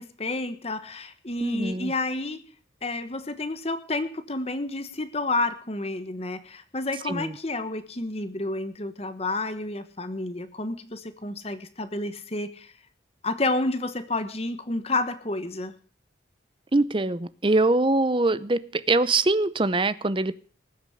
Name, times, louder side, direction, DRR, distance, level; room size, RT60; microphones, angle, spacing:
voice 1, 0.0-2.5 2.8-12.7 13.2-15.7, left 2 dB, 30° left, 11 dB, 1.2 m, -30 dB
voice 2, 1.4-1.9 7.1-7.3 16.7-20.3, right 2 dB, 25° right, 16 dB, 0.6 m, -23 dB
19.0 x 8.1 x 6.5 m, 0.42 s
head